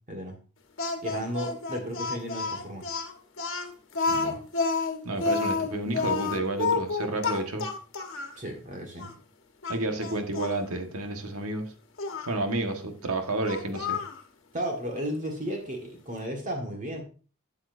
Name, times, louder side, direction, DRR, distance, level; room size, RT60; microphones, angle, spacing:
voice 1, 0.1-0.4 1.0-2.9 8.4-9.1 14.5-17.0, equal, 35° right, 2 dB, 1.7 m, -34 dB
Speech, 0.8-8.4 9.0-9.1 9.6-10.6 12.0-12.3 13.4-14.2, left 4 dB, 60° left, 1.4 m, -30 dB
voice 2, 4.1-4.4 5.0-7.7 9.7-11.7 12.3-14.0, right 2 dB, 75° right, 5 dB, 1.5 m, -30 dB
12.5 x 7.4 x 2.6 m, 0.37 s
head